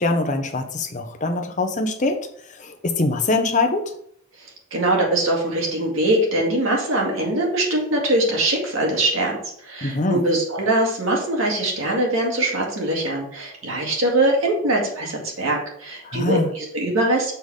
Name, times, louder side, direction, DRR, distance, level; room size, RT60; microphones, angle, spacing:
voice 1, 0.0-2.2 2.6-3.9 9.8-10.2 16.0-16.5, left 2 dB, 35° left, 5 dB, 0.7 m, -23 dB
voice 2, 4.7-17.3, right 1 dB, 70° right, -1 dB, 2.1 m, -22 dB
6.8 x 4.0 x 4.8 m, 0.67 s
head